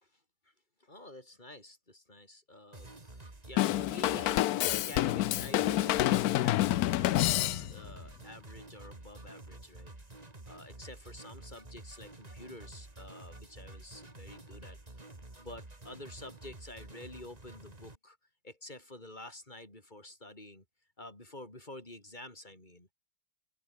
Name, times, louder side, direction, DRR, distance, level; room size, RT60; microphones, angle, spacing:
voice 1, 0.8-2.9 3.2-9.9 10.5-14.8 15.4-18.2 18.4-20.6 21.0-22.9, left 1 dB, 25° left, 5.9 m, -49 dB
sound 1, 2.7-18.0, right 2 dB, 20° right, 2.8 m, -50 dB
Drum kit / Drum, 3.6-7.9, left 15 dB, 70° left, 1.0 m, -28 dB
omnidirectional pair, 1.8 m